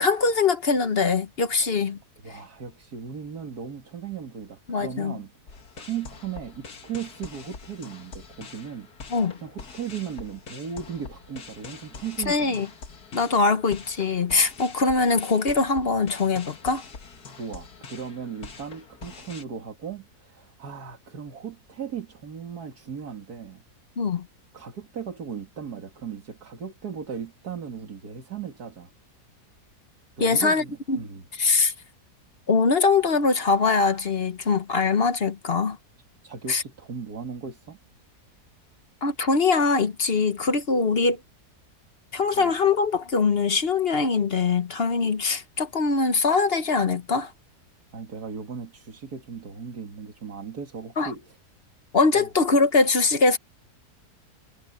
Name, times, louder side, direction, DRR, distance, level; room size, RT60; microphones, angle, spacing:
voice 1, 0.0-2.0 4.7-5.2 9.1-9.4 12.3-12.7 13.1-16.8 24.0-24.3 30.2-31.0 31.4-31.7 32.5-35.8 36.5-36.6 39.0-41.2 42.1-47.3 51.0-51.1 51.9-53.4, left 4 dB, 40° left, 1.1 m, -22 dB
voice 2, 2.2-5.3 5.8-8.9 9.4-12.7 17.4-23.6 24.5-28.9 30.2-31.2 36.2-37.8 42.3-42.5 47.9-51.4 52.1-52.3, right 7 dB, 75° right, 2.6 m, -37 dB
sound 1, 5.5-19.4, left 5 dB, 75° left, 2.3 m, -44 dB
omnidirectional pair, 1.7 m